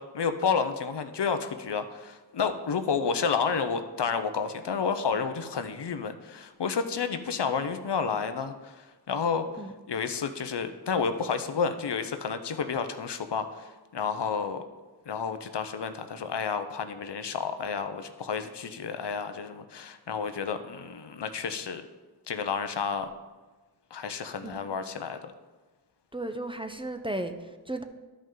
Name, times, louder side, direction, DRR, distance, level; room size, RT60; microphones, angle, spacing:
voice 1, 0.0-9.5 9.9-14.6 15.1-21.8 22.3-23.1 23.9-25.3, left 6 dB, 80° left, 9 dB, 0.6 m, -30 dB
voice 2, 26.1-27.8, right 1 dB, 15° right, 6 dB, 0.6 m, -35 dB
12.0 x 5.4 x 3.8 m, 1.2 s
wide cardioid pair, 50°, 41 cm